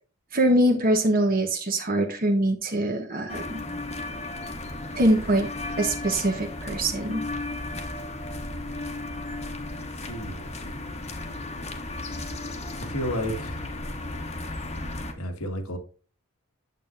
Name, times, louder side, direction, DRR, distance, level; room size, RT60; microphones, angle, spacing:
voice 1, 0.3-3.6 5.0-5.5 5.8-7.2, right 1 dB, 40° right, 4 dB, 1.1 m, -23 dB
sound 1, 3.3-15.1, left 2 dB, 30° left, 1.1 m, -34 dB
voice 2, 9.9-10.8 12.8-13.8 15.2-15.8, equal, 80° left, 6 dB, 1.6 m, -32 dB
9.1 x 7.4 x 2.5 m, 0.35 s
head